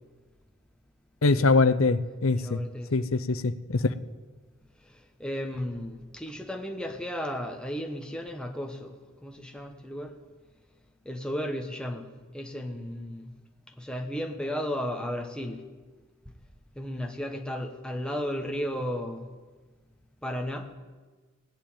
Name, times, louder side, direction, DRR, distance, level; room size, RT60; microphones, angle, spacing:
voice 1, 1.2-2.6 2.9-3.9, left 3 dB, 70° left, 0.7 m, -23 dB
voice 2, 2.3-3.1 5.2-9.0 9.2-10.1 11.0-13.3 13.8-15.6 16.8-19.3 20.2-20.7, equal, 5° left, 1.1 m, -34 dB
18.0 x 7.8 x 8.9 m
head